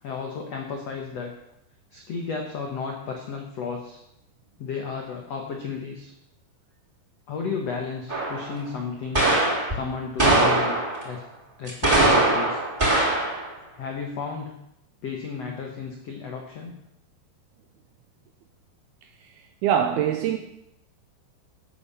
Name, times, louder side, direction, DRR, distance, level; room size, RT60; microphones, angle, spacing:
voice 1, 0.0-1.3 1.9-4.0 4.6-6.1 7.3-9.3 9.7-11.2 11.6-12.6 13.8-14.5 15.0-16.7, left 5 dB, 90° left, 1.4 m, -33 dB
sound 1, 8.1-8.5 9.1-9.7 10.2-11.1 11.7-13.4, right 2 dB, 10° right, 3.0 m, -21 dB
voice 2, 19.6-20.4, right 9 dB, 85° right, 2.3 m, -22 dB
12.0 x 8.6 x 7.1 m
omnidirectional pair, 5.3 m